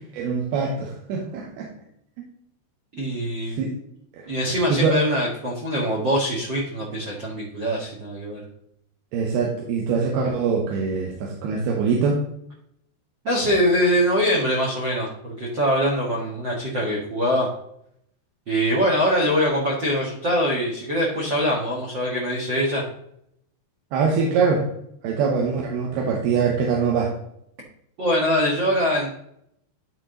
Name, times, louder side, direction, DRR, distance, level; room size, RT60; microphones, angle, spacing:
voice 1, 0.1-1.7 2.2-2.3 3.6-3.7 4.1-4.2 4.7-5.0 9.1-12.2 23.9-24.7 25.0-27.1, right 5 dB, 70° right, -1 dB, 2.7 m, -23 dB
voice 2, 2.9-3.6 4.3-8.4 13.2-17.5 18.5-22.8 28.0-29.1, equal, 90° right, -2 dB, 1.0 m, -23 dB
12.0 x 4.5 x 3.9 m, 0.73 s
omnidirectional pair, 5.3 m